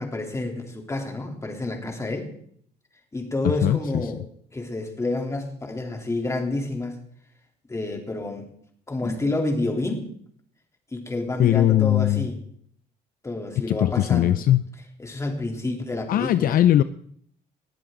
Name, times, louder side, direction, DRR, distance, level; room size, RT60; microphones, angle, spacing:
voice 1, 0.0-2.3 3.1-4.2 4.5-7.0 7.7-8.5 8.9-10.1 10.9-12.4 13.2-14.4 15.0-16.6, left 2 dB, 15° left, 2 dB, 3.4 m, -29 dB
voice 2, 3.6-4.1 11.4-12.3 13.7-14.6 16.1-16.8, left 12 dB, 60° left, 13 dB, 0.6 m, -20 dB
20.5 x 13.5 x 3.9 m, 0.64 s
cardioid pair, 110°, 17 cm